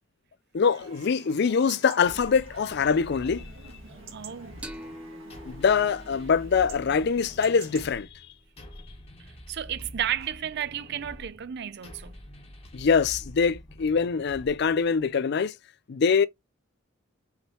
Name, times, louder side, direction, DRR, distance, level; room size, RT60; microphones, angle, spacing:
voice 1, 0.5-3.5 5.5-8.1 12.7-15.5 15.9-16.3, left 6 dB, 55° left, 0.4 m, -24 dB
Chatter / Livestock farm animals working animals / Chirp tweet, 0.7-7.9, right 4 dB, 80° right, 1.8 m, -48 dB
sound 1, 2.0-15.1, equal, 30° left, 1.1 m, -46 dB
voice 2, 4.1-4.7 9.2-12.2, right 10 dB, 55° right, 0.5 m, -33 dB
sound 2, 4.6-8.0, equal, 5° right, 0.7 m, -46 dB
5.7 x 3.1 x 2.9 m
head